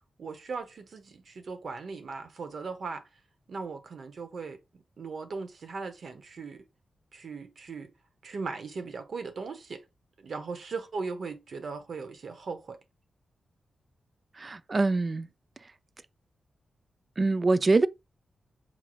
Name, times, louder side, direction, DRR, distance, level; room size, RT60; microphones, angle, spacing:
voice 1, 0.2-3.0 3.5-4.6 5.0-6.6 7.1-7.9 8.2-9.8 10.2-12.8, right 4 dB, 65° right, 1.0 m, -38 dB
voice 2, 14.4-15.3 17.2-17.9, right 3 dB, 35° right, 0.3 m, -24 dB
5.6 x 3.1 x 2.4 m
wide cardioid pair, 100°, 0 cm